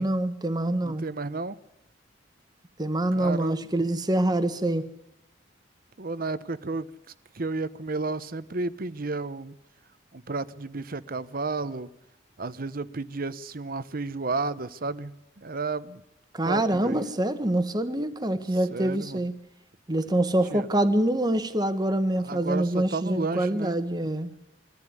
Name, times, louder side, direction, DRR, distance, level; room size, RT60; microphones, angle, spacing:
voice 1, 0.0-1.0 2.8-4.8 16.3-19.3 19.9-24.3, right 1 dB, 20° right, 11 dB, 1.5 m, -25 dB
voice 2, 0.8-1.6 3.1-3.7 6.0-6.9 7.3-9.5 10.1-11.9 12.4-16.0 16.4-17.0 18.7-19.2 20.5-20.7 22.2-23.8, right 3 dB, 50° right, 15 dB, 0.9 m, -32 dB
22.5 x 14.5 x 9.7 m, 0.93 s
head